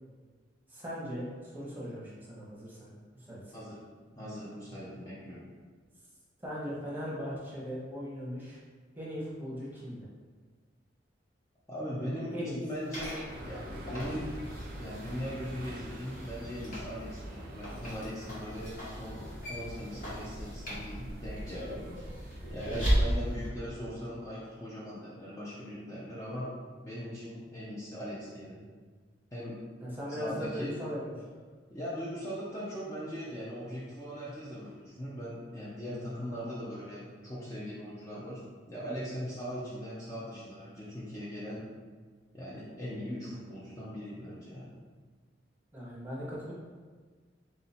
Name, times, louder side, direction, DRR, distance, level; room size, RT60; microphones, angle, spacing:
voice 1, 0.7-2.9 3.2-3.6 6.4-8.6 9.0-10.1 12.3-12.6 22.7-22.9 29.8-31.3 45.7-46.5, equal, 10° right, -7 dB, 1.0 m, -39 dB
voice 2, 4.2-5.4 11.7-14.3 14.8-19.2 19.5-21.8 22.5-26.5 26.8-28.6 29.3-29.6 30.2-30.7 31.7-41.6 42.3-44.7, equal, 15° left, -8 dB, 0.6 m, -40 dB
sound 1, 12.7-23.5, equal, 45° left, 1.3 m, -37 dB
sound 2, 13.3-23.0, right 1 dB, 50° right, 0.6 m, -44 dB
3.7 x 2.7 x 4.2 m, 1.5 s
head